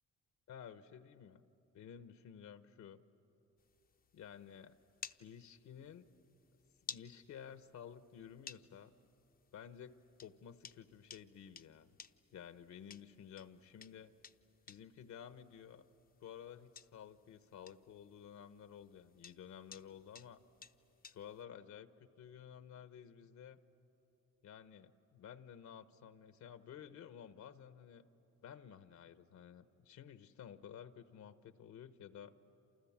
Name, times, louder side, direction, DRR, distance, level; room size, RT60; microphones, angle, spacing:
voice 1, 0.5-1.4 1.7-3.0 4.1-4.7 5.2-6.1 6.9-8.9 9.5-9.9 10.2-12.0 12.3-14.1 14.7-15.9 16.2-20.4 21.0-23.6 24.4-28.0 28.4-32.3, left 8 dB, 70° left, 11 dB, 1.1 m, -53 dB
sound 1, 3.6-21.4, left 6 dB, 30° left, 0.7 m, -57 dB
29.0 x 28.0 x 7.3 m, 3.0 s
cardioid pair, 90°, 30 cm